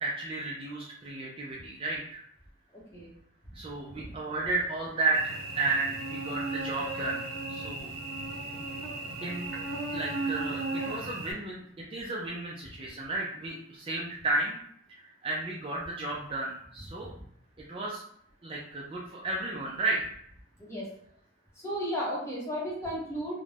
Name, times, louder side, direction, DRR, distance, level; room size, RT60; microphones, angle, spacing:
voice 1, 0.0-2.2 3.5-7.2 7.5-7.9 8.6-8.7 9.2-9.5 9.9-11.6 11.9-14.6 14.9-17.1 17.7-18.0 18.4-20.0, right 3 dB, 25° right, -4 dB, 0.3 m, -33 dB
voice 2, 2.7-3.1 4.0-4.1 20.6-20.9 21.6-23.4, equal, 15° left, -5 dB, 0.8 m, -34 dB
Cricket / Buzz, 5.1-11.3, right 2 dB, 80° right, 0.5 m, -35 dB
2.4 x 2.1 x 3.2 m, 0.67 s
head